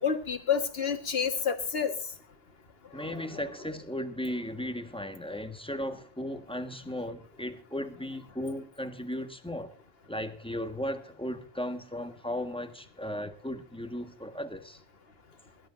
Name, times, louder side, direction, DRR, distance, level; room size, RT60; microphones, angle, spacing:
voice 1, 0.0-1.9 3.0-3.4, left 7 dB, 65° left, 1.9 m, -29 dB
voice 2, 2.9-9.7 10.1-14.8, left 1 dB, 5° left, 1.5 m, -36 dB
23.0 x 12.5 x 2.6 m
omnidirectional pair, 1.1 m